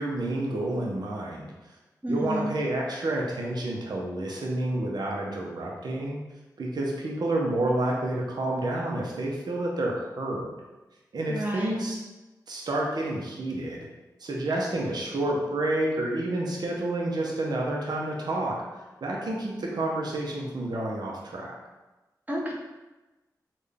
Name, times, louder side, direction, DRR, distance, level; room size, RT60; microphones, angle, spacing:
voice 1, 0.0-1.5 2.1-6.2 6.6-10.5 11.1-12.0 12.5-13.9 14.2-18.5 19.0-21.5, right 1 dB, 65° right, -2 dB, 0.6 m, -29 dB
voice 2, 2.0-2.5 11.3-11.8 22.3-22.5, right 1 dB, 20° right, -4 dB, 0.7 m, -30 dB
3.6 x 2.2 x 3.4 m, 1.1 s
cardioid pair, 40°, 8 cm